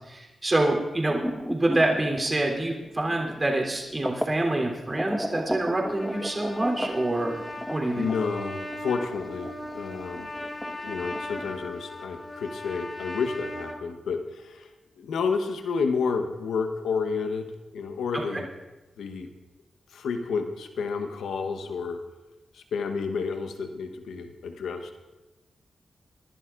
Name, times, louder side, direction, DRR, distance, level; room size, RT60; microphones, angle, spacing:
voice 1, 0.1-1.2 1.5-7.4 7.7-8.1, right 2 dB, 30° right, 0 dB, 3.4 m, -26 dB
sound 1, 1.1-4.4 4.9-11.7, equal, ahead, 1.3 m, -35 dB
Trumpet, 5.8-13.8, left 1 dB, 30° left, 2.3 m, -38 dB
voice 2, 7.9-10.3 10.8-14.7 15.0-18.5 19.0-19.3 19.9-22.0 22.5-25.0, left 5 dB, 85° left, 6 dB, 1.0 m, -30 dB
24.5 x 11.5 x 2.5 m, 1.1 s
supercardioid pair, 45°, 0 cm